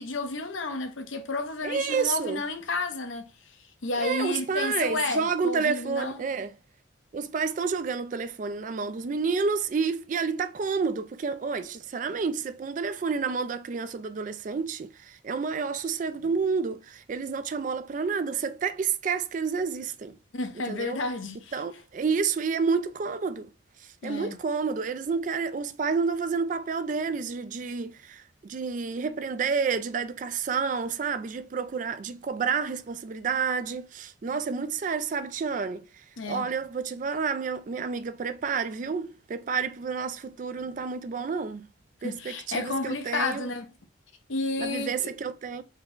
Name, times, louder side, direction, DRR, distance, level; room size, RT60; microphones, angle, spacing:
voice 1, 0.0-6.2 20.3-21.6 24.0-24.4 36.2-36.5 42.0-43.7 44.3-45.1, left 3 dB, 75° left, 0.7 m, -31 dB
voice 2, 1.6-2.4 4.0-6.5 7.1-20.1 20.7-21.0 21.5-23.5 24.0-35.9 36.3-41.7 42.0-43.5 44.6-45.6, right 5 dB, 40° right, 0.3 m, -29 dB
4.6 x 2.1 x 3.6 m
head